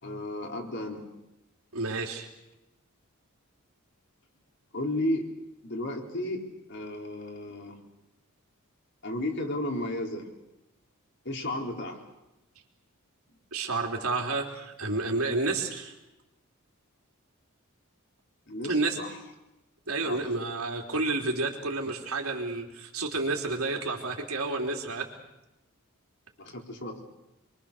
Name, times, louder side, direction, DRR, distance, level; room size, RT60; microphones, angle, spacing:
voice 1, 0.0-1.0 4.7-5.3 5.6-7.8 9.0-10.3 11.2-12.0 18.5-19.2 20.0-20.3 26.4-27.0, left 1 dB, 55° left, 2 dB, 3.9 m, -33 dB
voice 2, 1.7-2.3 13.5-15.9 18.7-19.0 19.9-25.1, right 3 dB, 80° right, 2 dB, 3.6 m, -30 dB
27.0 x 23.5 x 6.7 m, 0.95 s
head